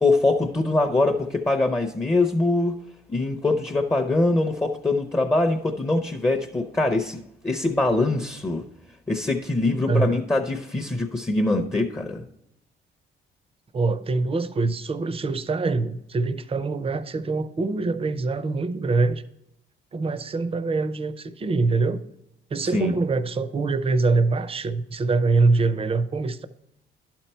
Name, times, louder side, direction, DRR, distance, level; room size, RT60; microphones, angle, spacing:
voice 1, 0.0-2.7 3.1-8.7 9.1-12.2 22.7-22.9, left 2 dB, 15° left, 0.6 m, -23 dB
voice 2, 9.9-10.2 13.7-19.2 19.9-22.0 22.5-26.5, right 3 dB, 30° right, 0.5 m, -24 dB
11.0 x 4.5 x 4.3 m
cardioid pair, 90°, 20 cm